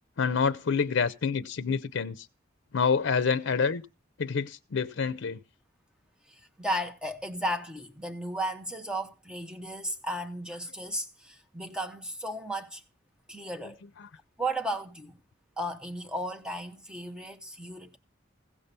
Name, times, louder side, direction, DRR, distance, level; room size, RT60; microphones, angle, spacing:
voice 1, 0.2-2.3 2.7-3.8 4.2-5.4 14.0-14.1, left 5 dB, 80° left, 0.5 m, -27 dB
voice 2, 6.3-12.8 13.3-13.8 14.4-15.2 15.6-18.0, right 1 dB, 5° right, 1.0 m, -34 dB
16.0 x 5.7 x 6.7 m
head